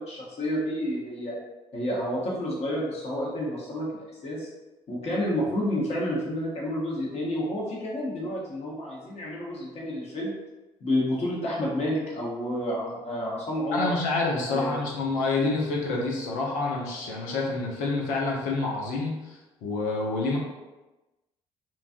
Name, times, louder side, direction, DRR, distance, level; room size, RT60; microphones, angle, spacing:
voice 1, 0.0-1.3 1.7-3.9 4.2-4.5 4.9-10.3 10.8-13.9 14.5-14.9, left 1 dB, 50° left, -4 dB, 1.2 m, -30 dB
voice 2, 13.7-20.4, left 3 dB, 75° left, -2 dB, 0.8 m, -28 dB
3.0 x 2.3 x 2.6 m, 1.1 s
hypercardioid pair, 60°, 13 cm